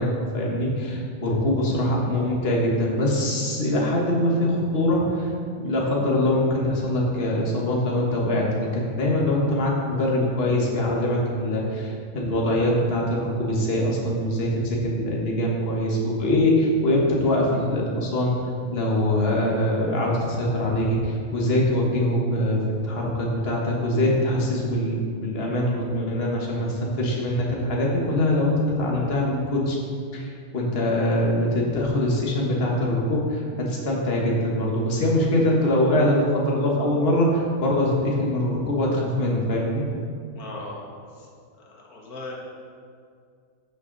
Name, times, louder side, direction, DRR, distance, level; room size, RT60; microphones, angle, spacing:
voice 1, 0.0-5.3 5.6-18.3 18.7-22.6 22.8-29.8 30.1-30.3 30.5-39.8, left 1 dB, 40° left, -3 dB, 1.7 m, -23 dB
voice 2, 40.4-40.8 41.6-42.3, left 2 dB, 85° left, -2 dB, 1.8 m, -38 dB
12.5 x 6.3 x 4.1 m, 2.3 s
omnidirectional pair, 1.6 m